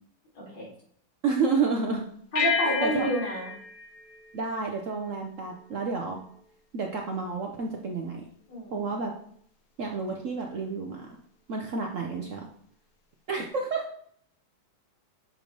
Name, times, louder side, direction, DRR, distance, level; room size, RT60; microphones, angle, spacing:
voice 1, 0.4-0.7 2.3-3.5 8.5-8.9, right 1 dB, 90° left, -5 dB, 3.5 m, -29 dB
voice 2, 1.2-2.0 2.6-3.1 4.3-6.2 6.7-8.3 8.7-9.1 9.8-11.1 11.5-12.5 13.3-13.8, right 4 dB, 65° right, 2 dB, 0.7 m, -30 dB
sound 1, 2.3-5.1, left 6 dB, 60° left, 1.0 m, -32 dB
7.6 x 3.2 x 5.1 m, 0.63 s
omnidirectional pair, 2.1 m